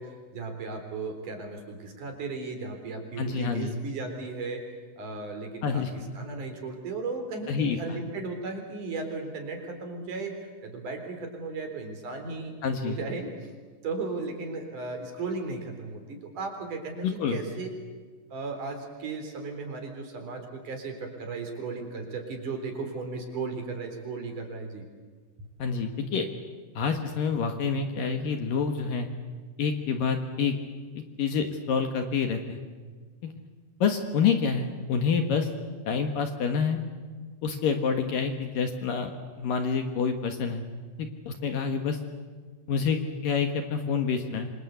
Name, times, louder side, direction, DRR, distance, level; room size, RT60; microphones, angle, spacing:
voice 1, 0.0-4.6 5.0-12.5 12.8-13.3 13.8-17.7 18.3-24.9, right 3 dB, 45° right, 4 dB, 5.0 m, -36 dB
voice 2, 3.2-3.8 5.6-6.1 7.5-7.8 12.6-13.0 17.0-17.4 25.6-26.3 26.8-29.1 29.6-30.5 30.9-32.6 33.2-33.3 33.8-35.5 35.9-36.8 37.4-40.6 41.3-42.0 42.7-44.5, left 6 dB, 60° left, 5 dB, 2.6 m, -27 dB
26.5 x 26.0 x 8.2 m, 1.5 s
omnidirectional pair, 5.5 m